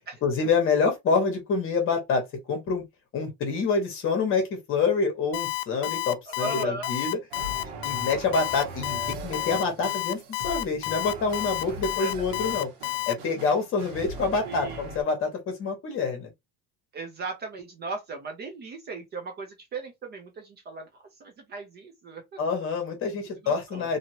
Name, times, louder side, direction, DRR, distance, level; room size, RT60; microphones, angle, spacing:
voice 1, 0.2-2.8 3.1-7.2 7.5-12.7 13.1-16.3 22.4-24.0, left 4 dB, 35° left, 1.2 m, -27 dB
Alarm, 5.3-13.1, left 15 dB, 90° left, 0.5 m, -30 dB
voice 2, 6.3-6.9 11.6-12.2 14.4-14.8 16.9-22.4 23.4-23.9, right 3 dB, 30° right, 0.6 m, -37 dB
sound 1, 7.3-15.0, right 3 dB, 80° right, 1.2 m, -40 dB
2.8 x 2.8 x 2.9 m
cardioid pair, 175°, 36 cm